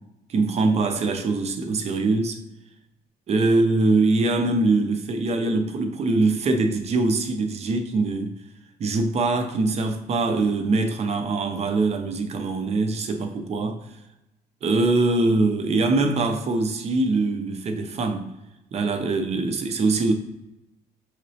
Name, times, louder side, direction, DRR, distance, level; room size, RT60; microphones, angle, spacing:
voice 1, 0.3-2.4 3.3-8.3 8.8-13.8 14.6-18.3 18.7-20.1, right 3 dB, 40° right, 0.6 m, -23 dB
5.6 x 3.1 x 2.7 m
cardioid pair, 110°, 17 cm